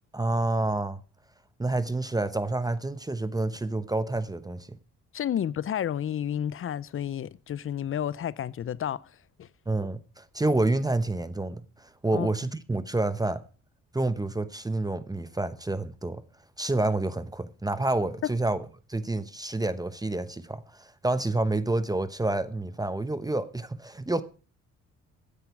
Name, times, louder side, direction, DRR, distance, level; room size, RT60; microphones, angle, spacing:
voice 1, 0.1-1.0 1.6-4.8 9.7-13.4 13.9-16.2 16.6-24.2, right 2 dB, 10° right, 0.9 m, -28 dB
voice 2, 5.1-9.0 9.4-9.5 12.1-12.3 18.2-18.3, left 10 dB, 45° left, 0.7 m, -31 dB
15.0 x 10.0 x 4.7 m
cardioid pair, 90°, 30 cm